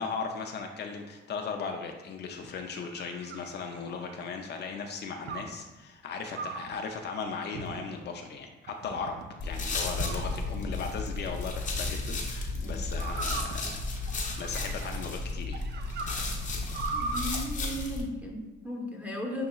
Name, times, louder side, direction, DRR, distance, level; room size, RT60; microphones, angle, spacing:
voice 1, 0.0-9.2 9.4-15.6, left 5 dB, 55° left, 4 dB, 0.4 m, -37 dB
sound 1, 2.4-4.3 5.3-5.6 6.3-6.8 7.5-8.1 8.7-9.3 10.0-10.8 11.9-12.2 13.0-15.0 15.5-17.4, right 4 dB, 60° right, 0.5 m, -39 dB
sound 2, 9.4-18.0, left 3 dB, 40° left, 0.8 m, -33 dB
voice 2, 16.9-19.5, equal, 5° right, -3 dB, 1.0 m, -36 dB
6.1 x 2.8 x 2.3 m, 1.2 s
cardioid pair, 90°, 20 cm